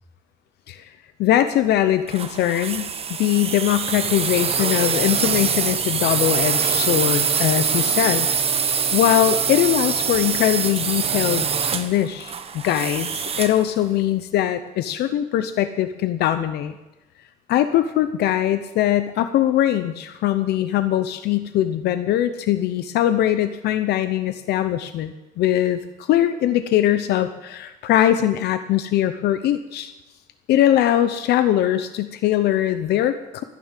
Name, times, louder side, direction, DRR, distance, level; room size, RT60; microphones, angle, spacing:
voice 1, 1.2-2.9 3.2-8.3 8.9-11.5 11.7-16.7 17.5-29.9 30.5-33.4, left 12 dB, 75° left, 11 dB, 0.7 m, -21 dB
sound 1, 2.1-13.6, right 6 dB, 35° right, 1.3 m, -24 dB
15.0 x 10.0 x 7.4 m, 1.0 s
cardioid pair, 110°, 17 cm